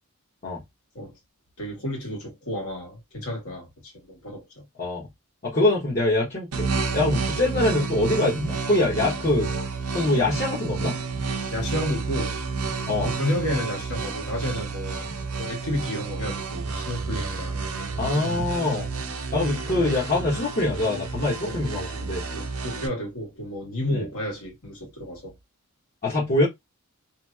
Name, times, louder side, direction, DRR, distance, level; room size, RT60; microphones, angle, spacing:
voice 1, 1.6-4.6 11.5-12.4 13.0-15.1 15.4-17.6 19.7-19.9 21.4-21.6 21.9-25.3, left 1 dB, 75° left, 1.5 m, -31 dB
voice 2, 5.4-6.7 6.9-9.5 9.9-10.9 12.9-13.1 18.0-18.9 19.3-22.2 23.9-24.0 26.0-26.5, left 2 dB, 40° left, 1.0 m, -24 dB
sound 1, 6.5-22.9, right 4 dB, 80° right, 0.6 m, -30 dB
2.9 x 2.5 x 2.2 m
head